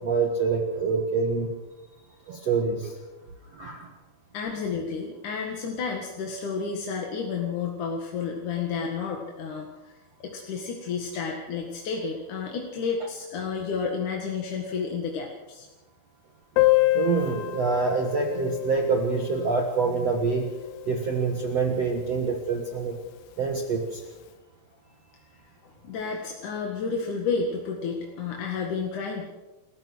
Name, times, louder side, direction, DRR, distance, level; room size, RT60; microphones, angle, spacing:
voice 1, 0.0-1.5 2.3-2.9 3.5-3.9 16.9-20.5 20.9-23.0 23.4-24.0, right 4 dB, 55° right, 2 dB, 1.8 m, -26 dB
voice 2, 4.3-9.9 10.2-15.7 25.6-29.3, left 5 dB, 55° left, 1 dB, 2.7 m, -31 dB
Piano, 16.6-21.9 22.2-22.3 22.5-22.7 23.0-23.1 23.8-24.0, left 18 dB, 75° left, 2.7 m, -28 dB
28.0 x 15.0 x 6.3 m, 1.1 s
omnidirectional pair, 5.4 m